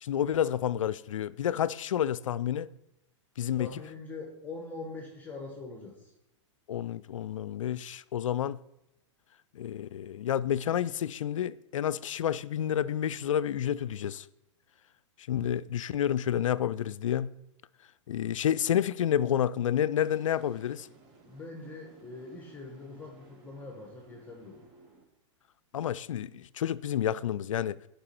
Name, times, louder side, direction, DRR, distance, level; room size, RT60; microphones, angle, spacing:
voice 1, 0.0-2.7 3.4-3.7 6.7-8.6 9.5-14.3 15.3-17.3 18.1-20.9 25.7-27.8, left 10 dB, 80° left, 0.4 m, -29 dB
voice 2, 3.6-6.1 21.3-24.7, left 3 dB, 10° left, 1.5 m, -43 dB
sound 1, 20.0-25.0, right 2 dB, 35° right, 3.3 m, -58 dB
11.5 x 5.4 x 4.4 m
hypercardioid pair, 115°, 16 cm